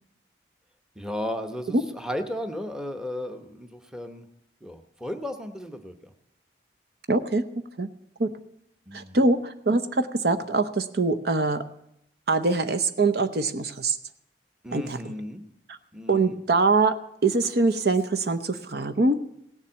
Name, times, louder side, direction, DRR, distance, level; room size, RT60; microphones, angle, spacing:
voice 1, 1.0-4.2 4.6-6.1 8.9-9.3 14.6-15.4 15.9-16.4, left 1 dB, 5° right, 7 dB, 0.9 m, -35 dB
voice 2, 7.1-7.4 7.8-7.9 8.2-8.3 8.9-11.6 12.3-14.0 14.7-15.0 15.7-15.8 16.1-16.9 17.2-19.2, right 3 dB, 60° right, 9 dB, 0.8 m, -23 dB
17.0 x 7.3 x 8.6 m, 0.79 s
head